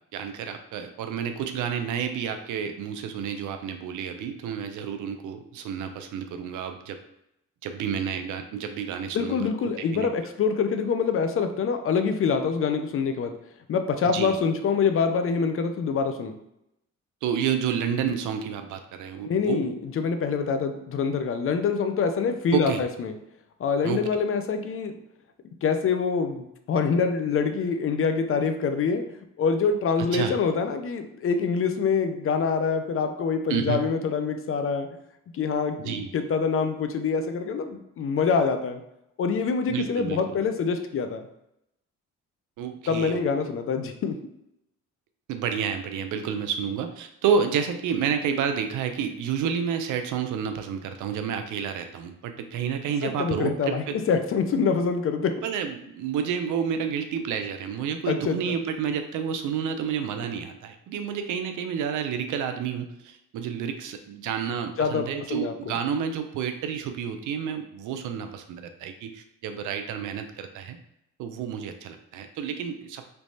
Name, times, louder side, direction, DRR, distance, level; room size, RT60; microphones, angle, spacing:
voice 1, 0.1-7.0 7.6-10.1 14.1-14.4 17.2-19.7 22.5-22.8 23.8-24.0 30.1-30.3 33.5-33.8 35.8-36.1 39.7-40.2 42.6-43.2 45.3-54.0 55.4-70.8 71.2-73.1, right 7 dB, 80° right, 7 dB, 0.5 m, -30 dB
voice 2, 9.1-13.3 13.7-16.3 19.2-23.1 23.6-24.9 25.6-29.0 29.4-34.9 35.3-38.8 39.2-41.2 42.9-44.1 53.0-55.3 58.1-58.4 64.8-65.5, left 5 dB, 45° left, 7 dB, 0.5 m, -25 dB
3.3 x 3.0 x 2.7 m, 0.81 s
cardioid pair, 90°, 30 cm